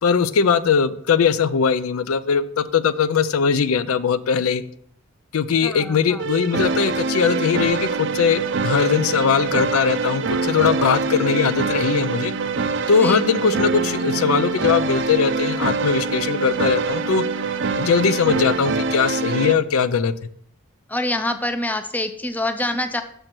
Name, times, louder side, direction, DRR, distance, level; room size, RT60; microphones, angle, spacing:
voice 1, 0.0-4.6 5.3-12.3 12.9-17.2 17.7-20.1, left 6 dB, 80° left, 14 dB, 0.4 m, -20 dB
voice 2, 5.6-6.3 12.9-13.2 20.9-23.0, left 1 dB, 10° left, 9 dB, 0.4 m, -26 dB
sound 1, 6.2-19.5, right 4 dB, 60° right, 0.5 m, -24 dB
6.5 x 4.4 x 6.0 m, 0.66 s
head